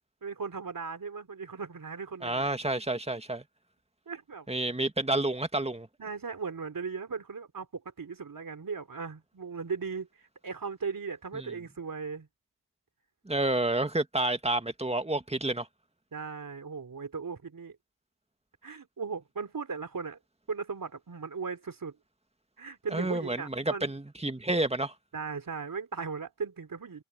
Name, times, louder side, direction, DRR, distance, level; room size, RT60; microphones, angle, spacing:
voice 1, 0.2-2.4 4.1-4.5 6.0-12.3 16.1-17.8 18.6-20.2 20.5-22.0 22.6-23.9 25.1-27.0, right 5 dB, 45° right, 3.8 m, -37 dB
voice 2, 2.2-3.4 4.5-5.9 11.3-11.5 13.3-15.7 22.9-24.9, right 2 dB, 15° right, 2.1 m, -29 dB
supercardioid pair, 45°, 45 cm